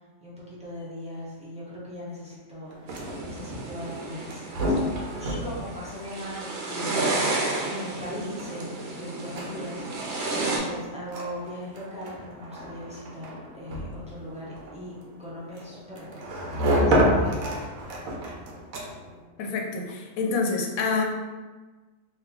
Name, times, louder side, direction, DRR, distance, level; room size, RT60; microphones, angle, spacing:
voice 1, 0.2-14.9 15.2-17.6, equal, 10° right, -8 dB, 0.5 m, -39 dB
sound 1, 2.7-19.2, equal, 75° right, 1.1 m, -31 dB
sound 2, 2.9-10.6, right 2 dB, 60° right, 0.8 m, -32 dB
voice 2, 19.4-21.0, left 4 dB, 80° left, 1 dB, 1.0 m, -27 dB
2.9 x 2.3 x 3.6 m, 1.3 s
omnidirectional pair, 1.5 m